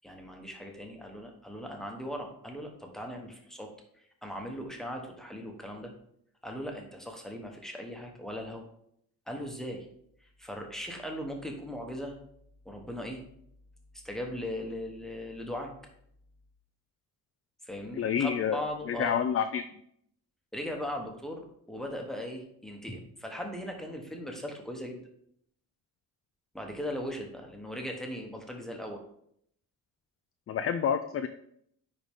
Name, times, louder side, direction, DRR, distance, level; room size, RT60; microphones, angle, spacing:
voice 1, 0.0-3.7 4.0-5.9 6.4-8.6 9.3-9.9 10.2-12.1 12.6-13.2 13.9-15.7 17.6-19.2 20.5-25.0 26.5-29.0, equal, ahead, 1 dB, 1.3 m, -38 dB
voice 2, 18.0-18.6 18.9-19.6 30.5-31.3, left 8 dB, 40° left, 9 dB, 0.4 m, -28 dB
9.9 x 4.0 x 3.7 m, 0.69 s
cardioid pair, 130°, 35 cm